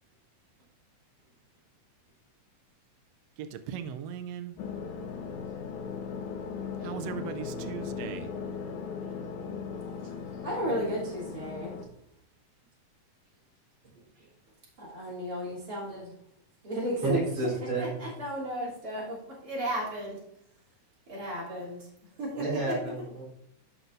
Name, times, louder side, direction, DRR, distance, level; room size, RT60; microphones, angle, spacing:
voice 1, 3.4-4.6 6.8-8.3, right 8 dB, 90° right, 8 dB, 1.4 m, -38 dB
sound 1, 4.6-11.9, left 6 dB, 85° left, 2.4 m, -38 dB
voice 2, 10.4-11.8 14.8-16.1 16.6-17.2 17.8-20.2 21.1-21.8 22.2-22.3, equal, 30° right, -7 dB, 3.5 m, -34 dB
voice 3, 17.0-18.0 22.3-23.2, right 3 dB, 60° right, -7 dB, 5.1 m, -31 dB
14.5 x 5.9 x 2.7 m, 0.75 s
omnidirectional pair, 3.5 m